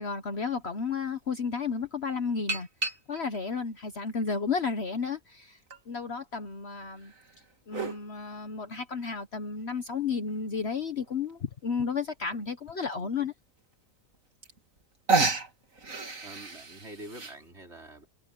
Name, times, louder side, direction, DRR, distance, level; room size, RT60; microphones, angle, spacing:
voice 1, 0.0-2.7 3.1-5.6 5.9-7.1 7.7-13.3, left 5 dB, 50° left, 1.4 m, -32 dB
sound 1, 0.8-0.9 2.5-3.4 4.1-5.1 5.7-5.8 7.0-8.0 9.7-9.8 10.3-10.4 10.6-10.7 11.0-11.3 12.3-12.4 12.9-13.0 14.1-14.2 14.4-14.8 15.1-17.4, right 3 dB, 70° right, 3.1 m, -31 dB
voice 2, 16.2-18.1, right 1 dB, 50° right, 5.2 m, -46 dB
omnidirectional pair, 1.5 m